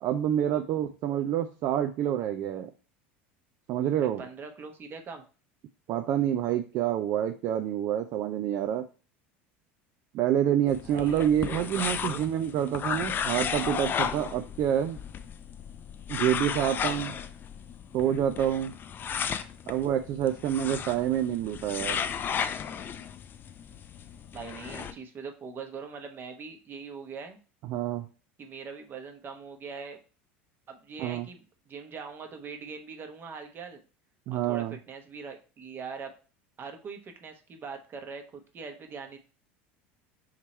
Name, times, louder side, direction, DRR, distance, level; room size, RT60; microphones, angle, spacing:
voice 1, 0.0-2.7 3.7-4.2 5.9-8.8 10.1-15.0 16.1-17.2 17.9-18.7 19.7-22.0 27.7-28.1 31.0-31.3 34.3-34.8, right 10 dB, 50° right, 7 dB, 0.4 m, -27 dB
voice 2, 4.0-5.2 10.8-12.3 19.1-19.3 24.3-27.4 28.4-30.0 30.7-33.8 34.3-36.1 36.6-39.2, right 5 dB, 35° right, 5 dB, 1.1 m, -42 dB
sound 1, 10.7-24.9, left 7 dB, 35° left, 0.5 m, -34 dB
3.6 x 3.0 x 4.3 m, 0.36 s
hypercardioid pair, 95°, 6 cm